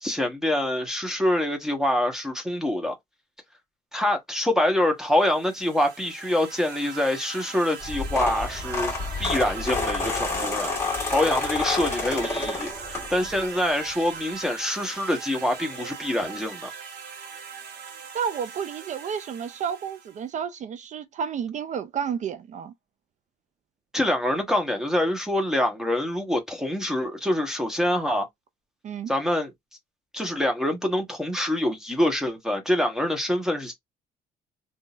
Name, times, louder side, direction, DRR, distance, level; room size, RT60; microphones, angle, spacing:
voice 1, 0.0-2.9 3.9-8.9 9.2-10.7 11.1-16.7 23.9-28.3 29.1-29.5 30.1-33.7, left 1 dB, 5° right, 1.2 m, -25 dB
sound 1, 5.1-20.2, right 6 dB, 75° right, 1.2 m, -40 dB
sound 2, 7.8-13.4 13.9-14.2 15.4-15.5 15.7-15.8 16.2-16.3, left 4 dB, 15° left, 1.9 m, -29 dB
voice 2, 18.1-22.7 28.8-29.1, right 7 dB, 45° right, 0.4 m, -31 dB
3.7 x 2.7 x 2.4 m
cardioid pair, 110°, 17 cm